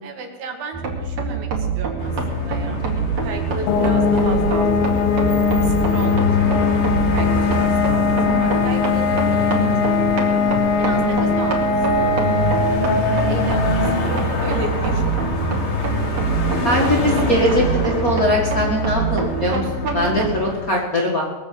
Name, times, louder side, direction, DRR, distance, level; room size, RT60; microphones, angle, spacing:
voice 1, 0.0-4.7 5.6-6.5 7.1-7.3 7.6-9.8 10.8-11.7 12.0-12.9 13.3-15.2, right 3 dB, 90° right, 4 dB, 3.7 m, -34 dB
sound 1, 0.7-20.3, right 5 dB, 55° right, 3.4 m, -25 dB
sound 2, 2.0-20.7, left 4 dB, 55° left, 0.7 m, -27 dB
sound 3, 3.7-18.3, left 5 dB, 85° left, 2.9 m, -21 dB
voice 2, 16.6-21.2, left 1 dB, 35° left, -3 dB, 1.6 m, -21 dB
21.5 x 7.2 x 7.5 m, 1.3 s
omnidirectional pair, 4.1 m